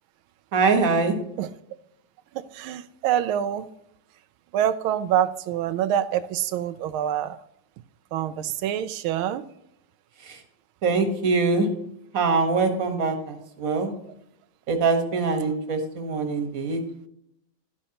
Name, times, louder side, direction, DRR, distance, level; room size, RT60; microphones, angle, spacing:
voice 1, 0.5-1.2 10.2-10.4 10.8-11.7 12.1-13.9 14.7-16.8, right 4 dB, 45° right, 6 dB, 1.7 m, -23 dB
voice 2, 2.3-3.7 4.5-7.4 8.1-9.5, right 10 dB, 90° right, 12 dB, 1.4 m, -26 dB
12.0 x 10.0 x 2.9 m, 0.76 s
omnidirectional pair, 2.2 m